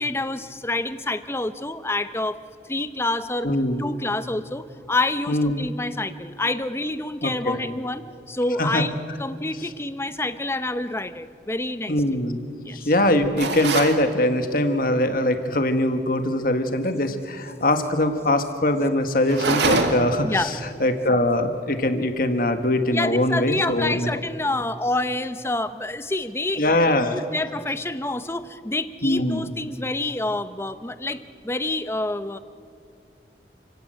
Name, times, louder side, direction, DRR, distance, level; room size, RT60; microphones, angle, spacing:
voice 1, 0.0-2.4 2.7-3.5 3.8-12.0 12.6-12.9 20.2-20.5 22.9-32.4, left 2 dB, 15° left, 12 dB, 0.7 m, -27 dB
voice 2, 3.4-3.8 5.3-5.6 7.2-7.6 8.6-8.8 11.9-12.5 12.7-20.5 20.8-24.1 26.6-27.2 29.0-29.5, left 1 dB, 50° left, 7 dB, 1.7 m, -22 dB
sound 1, 13.4-14.0 19.3-20.2, right 3 dB, 80° right, 2.2 m, -23 dB
29.5 x 17.0 x 7.8 m, 2.4 s
head